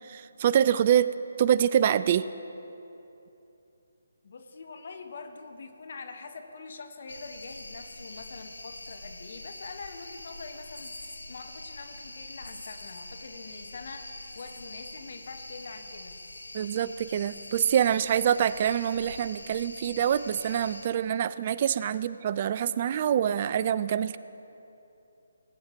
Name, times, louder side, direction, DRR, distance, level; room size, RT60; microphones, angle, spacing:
voice 1, 0.1-1.1 1.4-2.3 16.5-24.2, right 9 dB, 35° right, 16 dB, 0.3 m, -25 dB
voice 2, 4.2-16.2, left 4 dB, 50° left, 6 dB, 1.0 m, -44 dB
sound 1, 7.1-20.9, left 2 dB, 80° left, 0.9 m, -44 dB
18.5 x 8.7 x 3.5 m, 2.9 s
figure-of-eight pair, 145°, 0 cm